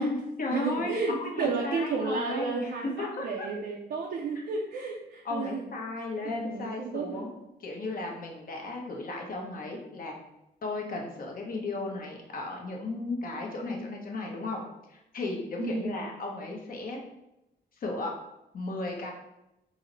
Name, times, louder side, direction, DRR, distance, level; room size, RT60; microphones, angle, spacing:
voice 1, 0.0-3.5 5.2-7.3 7.6-10.2 10.6-14.6 14.9-17.0 17.8-18.1 18.5-19.1, left 2 dB, 55° left, 0 dB, 0.9 m, -35 dB
voice 2, 0.5-5.6 6.3-7.3 15.6-16.0, right 4 dB, 65° right, -1 dB, 0.5 m, -32 dB
4.0 x 2.0 x 3.9 m, 0.90 s
cardioid pair, 80°, 18 cm